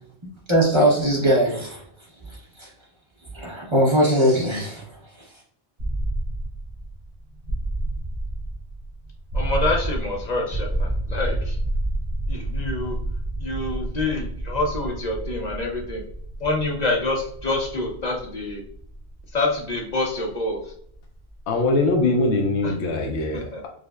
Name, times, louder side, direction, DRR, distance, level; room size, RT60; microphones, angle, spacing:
voice 1, 0.5-1.8 2.6-2.7 3.3-4.8, equal, 30° right, -5 dB, 0.8 m, -20 dB
sound 1, 5.8-21.6, right 1 dB, 45° right, 1.2 m, -30 dB
voice 2, 9.3-11.6 12.3-13.0 13.4-16.0 16.4-18.6 19.3-20.7 22.6-22.7 23.3-23.6, left 2 dB, 50° left, 0 dB, 0.6 m, -27 dB
voice 3, 21.5-23.7, left 2 dB, 80° left, 1 dB, 0.9 m, -22 dB
4.8 x 2.1 x 2.3 m, 0.64 s
omnidirectional pair, 1.1 m